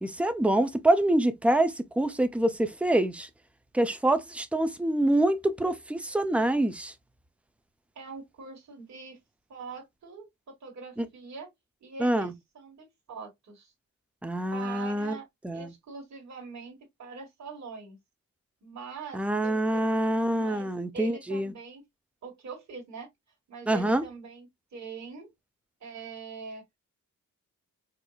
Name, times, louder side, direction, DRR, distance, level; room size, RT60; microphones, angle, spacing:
voice 1, 0.0-3.3 3.7-6.9 11.0-11.1 12.0-12.3 14.2-15.2 15.4-15.7 19.1-21.5 23.7-24.0, right 1 dB, 5° right, 0.3 m, -26 dB
voice 2, 7.9-9.2 9.5-11.5 11.8-13.7 14.5-15.3 15.5-18.0 18.6-19.9 20.3-21.8 22.2-23.1 23.5-25.3 25.8-26.6, right 5 dB, 60° right, 1.6 m, -43 dB
4.4 x 2.5 x 2.3 m
wide cardioid pair, 140°, 32 cm